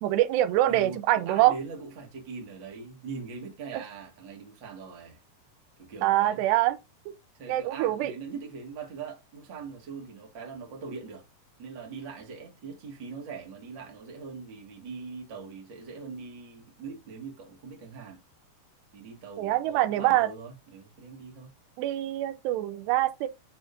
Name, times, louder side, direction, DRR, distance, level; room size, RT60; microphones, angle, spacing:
voice 1, 0.0-1.5 3.7-3.8 6.0-6.8 7.5-8.1 19.4-20.3 21.8-23.3, right 15 dB, 85° right, 2.7 m, -24 dB
voice 2, 0.6-5.2 5.8-6.4 7.4-11.2 11.6-18.2 18.9-21.5, right 5 dB, 40° right, 1.9 m, -41 dB
8.8 x 4.3 x 2.7 m
omnidirectional pair, 4.8 m